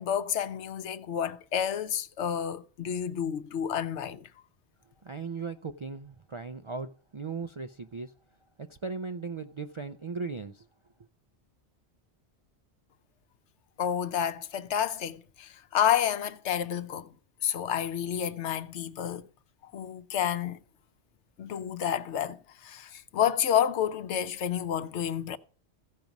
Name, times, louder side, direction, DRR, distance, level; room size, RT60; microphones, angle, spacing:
voice 1, 0.0-4.3 13.8-17.1 17.4-19.2 19.7-20.6 21.4-25.4, left 9 dB, 80° left, 1.0 m, -30 dB
voice 2, 5.0-8.1 8.7-10.6, right 4 dB, 55° right, 0.3 m, -37 dB
15.5 x 5.2 x 5.9 m
omnidirectional pair, 1.2 m